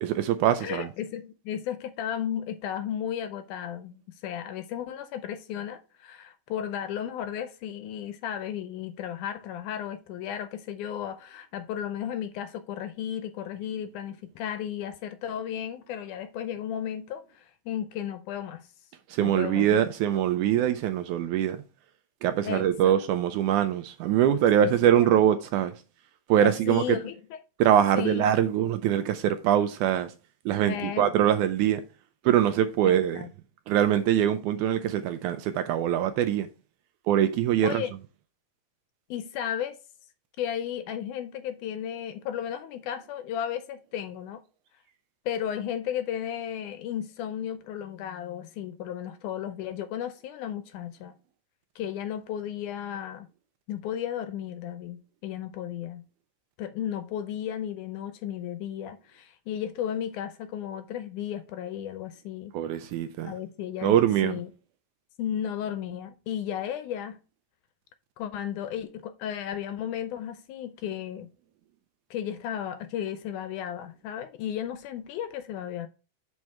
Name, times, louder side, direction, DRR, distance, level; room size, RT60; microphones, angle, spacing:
voice 1, 0.0-0.9 19.1-21.6 22.2-25.7 26.3-27.0 27.6-30.1 30.5-31.8 32.3-33.3 33.7-36.5 37.1-37.8 62.5-63.3 63.8-64.3, right 10 dB, 80° right, 1.9 m, -23 dB
voice 2, 0.6-18.7 19.2-19.8 20.1-20.2 22.4-23.0 24.6-25.2 26.4-27.4 28.0-28.3 30.7-31.1 32.9-33.3 37.6-37.9 39.1-39.8 40.4-44.4 45.3-51.1 51.8-53.3 53.7-56.1 56.6-62.6 63.2-64.0 64.2-64.5 65.2-67.2 68.2-71.3 72.1-75.9, left 10 dB, 80° left, 1.9 m, -34 dB
6.3 x 4.7 x 4.4 m
omnidirectional pair, 3.8 m